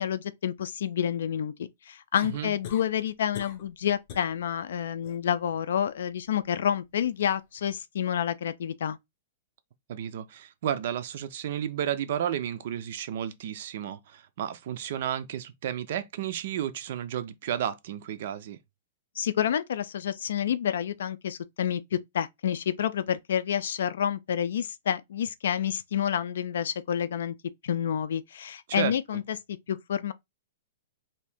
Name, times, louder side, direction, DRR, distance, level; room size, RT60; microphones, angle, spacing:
voice 1, 0.0-9.0 19.2-27.3 27.6-29.4 29.7-30.1, left 9 dB, 70° left, 0.4 m, -29 dB
sound 1, 2.1-2.9 3.3-3.7 4.1-4.3 4.8-5.2 7.0-7.1, left 8 dB, 35° left, 0.8 m, -42 dB
voice 2, 9.9-18.6 28.7-28.9, right 10 dB, 50° right, 0.4 m, -32 dB
2.8 x 2.6 x 3.4 m
hypercardioid pair, 170°, 0 cm